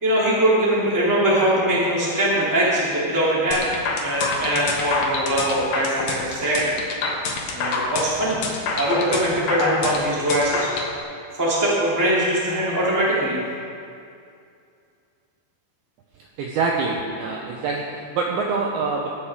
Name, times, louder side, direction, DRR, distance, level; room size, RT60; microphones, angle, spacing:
voice 1, 0.0-3.6 4.0-6.7 7.5-8.4 8.7-10.7 11.3-13.4, right 1 dB, 5° right, -7 dB, 1.8 m, -21 dB
sound 1, 3.5-10.9, left 3 dB, 65° left, 2.6 m, -26 dB
voice 2, 16.4-19.1, right 4 dB, 75° right, -1 dB, 2.4 m, -25 dB
20.0 x 8.9 x 3.7 m, 2.4 s
omnidirectional pair, 5.4 m